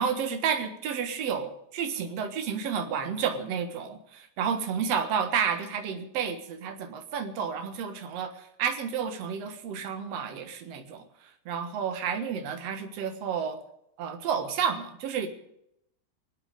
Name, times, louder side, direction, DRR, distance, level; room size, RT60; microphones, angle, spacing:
voice 1, 0.0-11.0 11.5-13.6 14.0-15.3, right 7 dB, 60° right, 6 dB, 1.8 m, -31 dB
25.5 x 9.0 x 5.2 m, 0.80 s
omnidirectional pair, 4.8 m